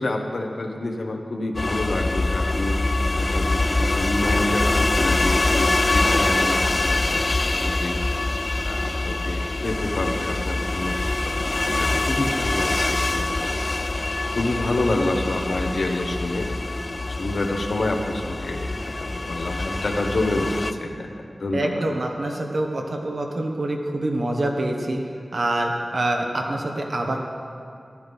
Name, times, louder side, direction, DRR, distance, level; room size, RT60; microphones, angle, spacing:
voice 1, 0.0-2.8 3.1-8.0 8.6-13.5 14.3-16.5 17.1-21.8, left 2 dB, 75° left, 2 dB, 1.1 m, -28 dB
sound 1, 1.5-20.7, left 2 dB, 40° left, 0.4 m, -24 dB
voice 2, 21.5-25.0 25.3-27.2, right 1 dB, 70° right, 1 dB, 1.4 m, -25 dB
14.5 x 12.0 x 3.5 m, 2.4 s
wide cardioid pair, 85°, 0 cm